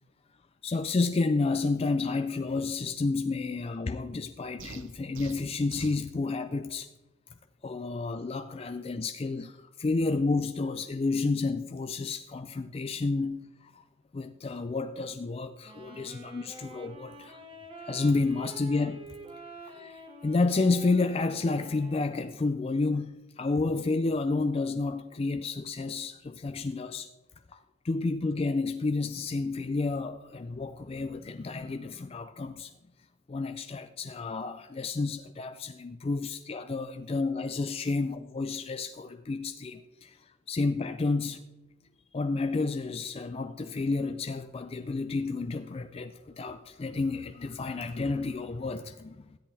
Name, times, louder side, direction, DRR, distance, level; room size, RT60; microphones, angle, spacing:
voice 1, 0.6-6.9 7.6-13.8 14.1-17.4 17.8-19.1 19.7-27.1 27.5-32.7 33.3-41.4 42.1-49.4, left 3 dB, 30° left, 0.3 m, -30 dB
sound 1, 4.6-6.0, right 4 dB, 70° right, 0.9 m, -44 dB
Wind instrument woodwind instrument, 15.6-22.6, right 2 dB, 25° right, 1.3 m, -48 dB
13.5 x 10.0 x 3.4 m
head